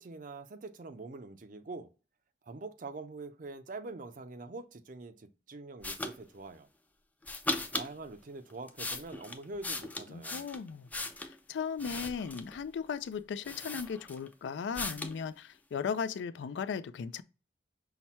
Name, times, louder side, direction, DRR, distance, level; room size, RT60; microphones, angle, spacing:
voice 1, 0.0-1.9 2.5-6.7 7.7-10.4, right 3 dB, 45° right, 0.5 m, -44 dB
sound 1, 5.8-6.2 7.2-7.9 8.5-11.4 11.8-12.6 13.1-13.2 13.4-14.3 14.7-15.2, left 2 dB, 10° left, 0.4 m, -37 dB
voice 2, 10.1-10.9 11.2-17.2, left 6 dB, 75° left, 0.3 m, -37 dB
5.8 x 2.2 x 4.1 m
head